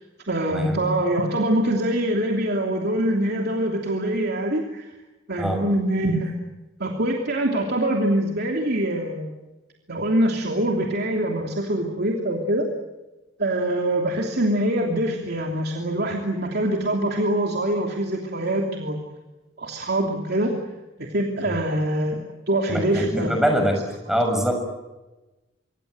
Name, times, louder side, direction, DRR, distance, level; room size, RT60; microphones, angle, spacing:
voice 1, 0.3-4.8 5.3-6.3 6.8-9.4 9.9-12.7 13.4-19.0 19.6-20.6 21.0-23.4, right 1 dB, 60° right, 1 dB, 3.0 m, -24 dB
voice 2, 22.7-23.8 24.1-24.5, equal, ahead, 4 dB, 6.4 m, -23 dB
25.5 x 25.0 x 7.9 m, 1.1 s
head